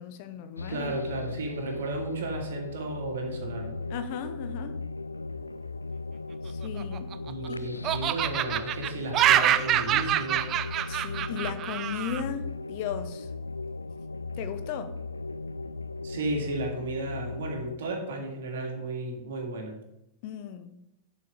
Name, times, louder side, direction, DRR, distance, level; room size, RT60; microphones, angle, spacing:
voice 1, 0.0-1.0 3.9-4.8 6.4-7.1 7.5-7.6 10.9-13.3 14.4-14.9 20.2-20.7, left 8 dB, 50° left, 0.8 m, -36 dB
sound 1, 0.6-17.8, left 3 dB, 80° left, 0.3 m, -37 dB
voice 2, 0.7-3.8 7.3-10.5 16.0-19.8, right 2 dB, 60° right, 2.1 m, -34 dB
Laughter, 6.6-7.5 7.8-12.2, right 11 dB, 35° right, 0.5 m, -26 dB
11.0 x 5.2 x 5.2 m
figure-of-eight pair, 90°, 0 cm